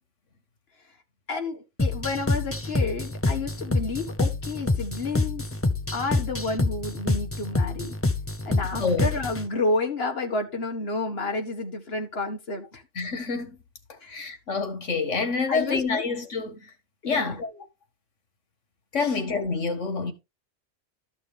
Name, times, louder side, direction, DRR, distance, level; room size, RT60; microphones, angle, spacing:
voice 1, 1.3-5.5 5.9-8.0 8.5-12.8 14.0-14.2 15.5-16.0 17.0-17.4 19.0-19.2, left 3 dB, 55° left, 2.0 m, -30 dB
sound 1, 1.8-9.5, left 2 dB, 15° left, 0.6 m, -27 dB
voice 2, 8.8-9.1 13.0-13.5 14.1-16.7 17.1-17.6 18.9-20.1, left 4 dB, 85° left, 2.1 m, -27 dB
13.0 x 6.2 x 3.5 m
omnidirectional pair, 1.2 m